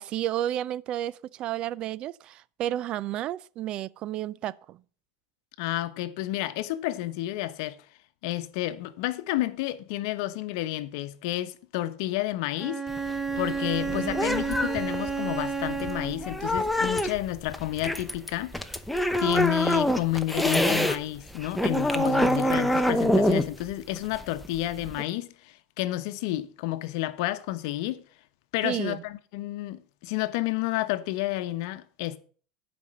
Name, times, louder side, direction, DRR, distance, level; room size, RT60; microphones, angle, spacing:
voice 1, 0.0-4.8 13.9-14.2 28.6-29.0, right 12 dB, 40° right, 0.4 m, -32 dB
voice 2, 5.6-7.8 8.2-12.8 13.4-18.6 19.2-28.0 28.5-32.2, left 15 dB, 70° left, 0.9 m, -30 dB
Bowed string instrument, 12.6-16.4, right 5 dB, 20° right, 1.0 m, -31 dB
sound 1, 12.9-21.0 21.3-25.0, left 1 dB, ahead, 0.8 m, -26 dB
11.0 x 5.2 x 7.3 m
supercardioid pair, 135°, 2 cm